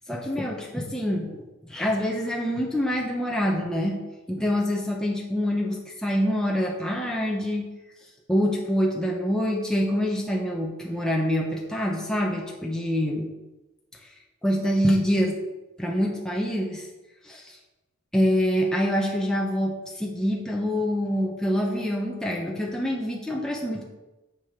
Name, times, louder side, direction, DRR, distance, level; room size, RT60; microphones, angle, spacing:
voice 1, 0.1-4.0 4.3-7.7 8.3-13.3 14.4-15.4 15.8-16.9 17.2-17.6 18.1-23.8, equal, 5° left, -2 dB, 0.9 m, -26 dB
6.9 x 6.2 x 5.6 m, 1.1 s
head